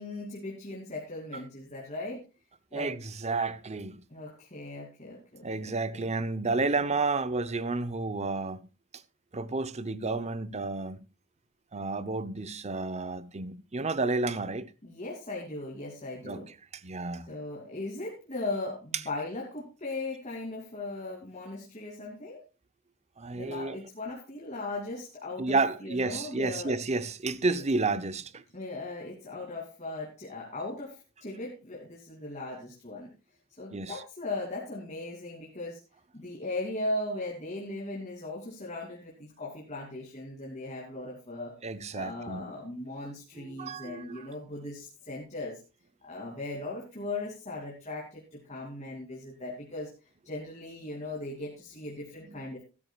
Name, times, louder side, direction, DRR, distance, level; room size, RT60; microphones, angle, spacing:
voice 1, 0.0-2.2 2.7-2.9 4.1-6.1 14.8-16.5 17.3-22.4 23.3-26.8 28.5-33.1 33.6-35.8 36.1-41.5 41.9-45.6 46.0-49.9 50.2-52.6, left 2 dB, 35° left, 2.9 m, -38 dB
voice 2, 2.7-4.0 5.4-8.6 9.3-11.0 11.7-14.7 16.2-16.4 16.8-17.3 23.2-23.8 25.4-28.4 33.7-34.0 41.6-42.5 43.4-44.3, right 3 dB, 35° right, 0.8 m, -31 dB
15.5 x 13.0 x 2.4 m
head